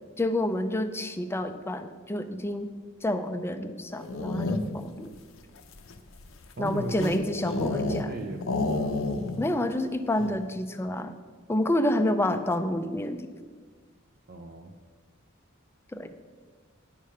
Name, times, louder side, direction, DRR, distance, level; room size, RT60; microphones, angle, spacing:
voice 1, 0.2-2.7 3.0-5.1 6.6-8.1 9.4-11.1 11.5-13.3 15.9-16.1, left 1 dB, 10° left, 8 dB, 0.4 m, -28 dB
sound 1, 3.9-4.9 5.6-8.1 8.4-9.5 9.8-9.9 10.1-10.5, left 2 dB, 70° left, 0.7 m, -30 dB
voice 2, 6.6-7.2 7.4-9.0 14.3-14.8, right 2 dB, 55° right, 3 dB, 0.6 m, -37 dB
10.0 x 4.9 x 5.7 m, 1.5 s
head